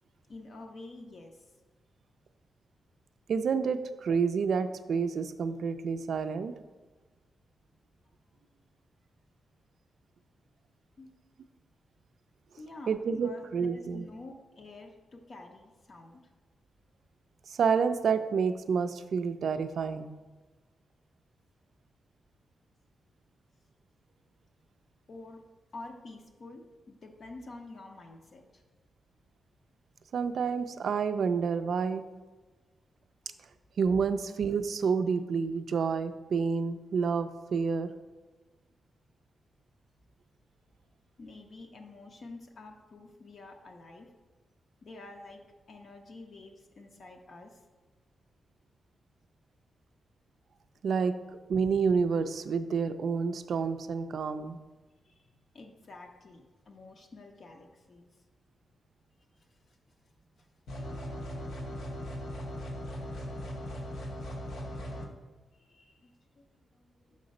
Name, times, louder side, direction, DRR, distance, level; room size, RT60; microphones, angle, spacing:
voice 1, 0.3-1.4 11.0-11.1 12.6-16.2 25.1-25.4 25.7-28.6 41.2-44.1 44.8-45.4 45.7-47.6 55.0-58.1 59.7-59.8 65.5-67.2, left 2 dB, 40° left, 2 dB, 0.6 m, -48 dB
voice 2, 3.3-6.5 12.9-14.1 17.5-20.1 30.1-32.0 33.8-37.9 50.8-51.1 51.5-54.6, right 5 dB, 60° right, 10 dB, 0.4 m, -29 dB
sound 1, 60.7-65.1, equal, 70° left, 0.9 m, -38 dB
6.4 x 3.9 x 5.2 m, 1.3 s
wide cardioid pair, 175°, 0 cm